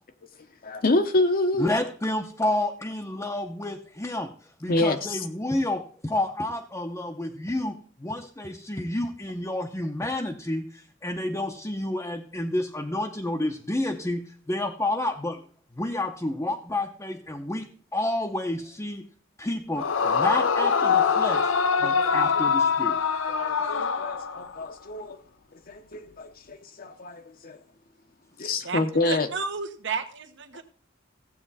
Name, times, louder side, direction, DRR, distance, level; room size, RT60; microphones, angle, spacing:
voice 1, 0.6-1.7 4.7-5.2 21.8-22.4 23.4-25.2 25.7-27.6 28.4-29.3, left 2 dB, 50° left, 0.9 m, -27 dB
voice 2, 1.6-4.3 4.6-15.4 15.7-19.1 19.4-21.5 21.8-23.0, left 1 dB, 15° left, 0.8 m, -30 dB
Yell / Screaming, 19.8-24.7, left 6 dB, 75° left, 0.7 m, -24 dB
voice 3, 28.6-30.6, right 5 dB, 65° right, 1.3 m, -32 dB
15.5 x 8.3 x 4.1 m
head